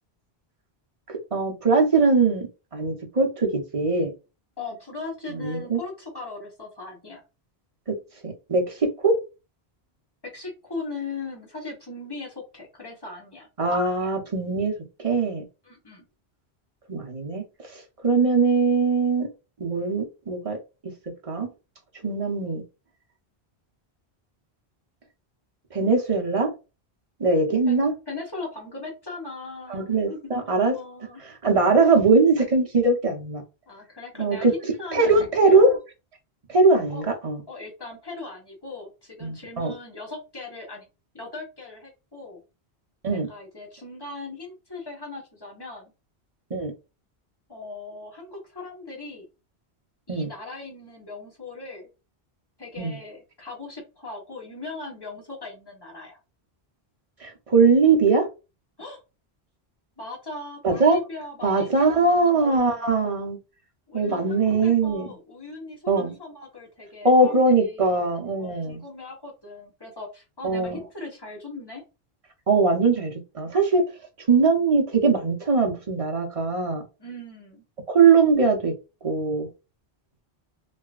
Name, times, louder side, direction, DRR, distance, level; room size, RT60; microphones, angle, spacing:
voice 1, 1.1-2.5 2.7-4.1 5.3-5.8 7.9-8.0 8.2-9.1 13.6-14.7 15.0-15.4 16.9-17.4 18.0-19.3 19.6-20.6 21.3-21.5 22.0-22.6 25.7-26.5 27.2-27.9 29.7-30.7 31.4-33.4 34.2-34.5 34.9-35.7 36.5-37.4 39.2-39.7 43.0-43.3 46.5-46.7 50.1-50.3 52.8-53.0 57.2-58.3 60.6-61.0 61.4-63.4 63.9-65.1 65.9-66.1 67.0-68.8 70.4-70.8 72.5-73.8 74.3-76.8 77.9-78.7 79.0-79.5, right 4 dB, 35° right, 1 dB, 0.9 m, -21 dB
voice 2, 4.6-7.2 10.2-13.5 15.6-16.1 27.7-30.3 30.7-31.2 33.7-35.5 36.9-37.1 37.5-40.9 41.1-42.4 43.1-45.9 47.5-49.3 50.1-51.9 52.6-56.2 58.8-59.0 60.0-62.9 63.9-68.1 68.4-71.9 77.0-77.6, left 3 dB, 25° left, -1 dB, 1.2 m, -39 dB
3.2 x 2.8 x 2.4 m, 0.29 s
omnidirectional pair, 1.1 m